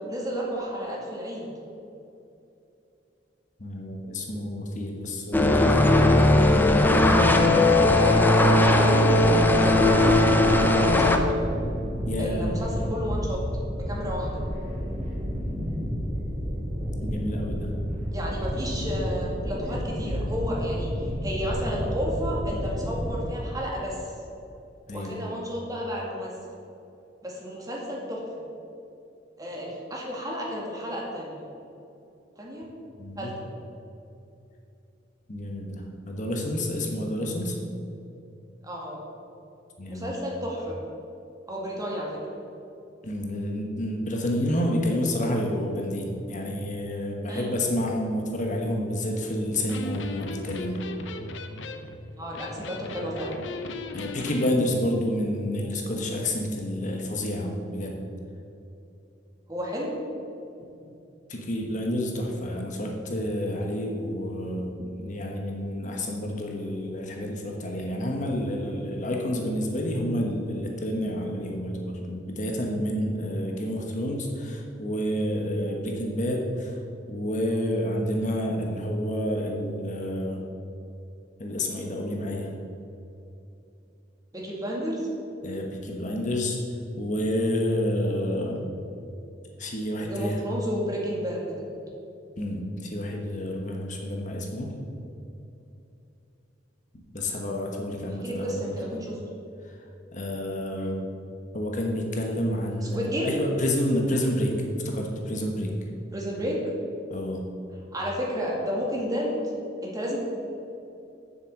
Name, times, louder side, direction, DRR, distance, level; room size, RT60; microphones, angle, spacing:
voice 1, 0.1-1.5 7.7-11.2 12.2-13.4 13.8-14.4 18.1-24.0 24.9-26.3 27.2-28.2 29.4-31.4 32.4-32.7 33.2-33.5 38.6-39.0 39.9-40.8 41.5-42.2 47.3-47.6 52.2-53.3 59.5-60.0 84.3-85.1 90.0-91.4 98.1-99.1 102.9-103.3 106.1-106.6 107.9-109.5 109.8-110.2, equal, 20° right, -3 dB, 2.0 m, -32 dB
voice 2, 3.6-6.3 12.1-12.6 17.0-17.7 24.9-25.2 33.0-33.3 35.3-37.6 39.8-40.1 43.0-50.8 53.9-58.0 61.3-76.8 77.1-80.4 81.4-82.5 85.4-86.6 87.0-88.6 89.6-90.4 92.4-94.7 97.1-99.0 99.6-99.8 100.1-101.1 101.5-105.7 107.1-107.4, left 1 dB, 45° left, 1 dB, 1.2 m, -29 dB
sound 1, 5.3-11.2, left 1 dB, 10° left, 0.6 m, -18 dB
sound 2, 9.4-23.2, equal, 40° right, 2.2 m, -31 dB
Electric guitar, 49.5-54.6, left 2 dB, 85° left, 0.7 m, -37 dB
7.4 x 7.1 x 7.4 m, 2.7 s
head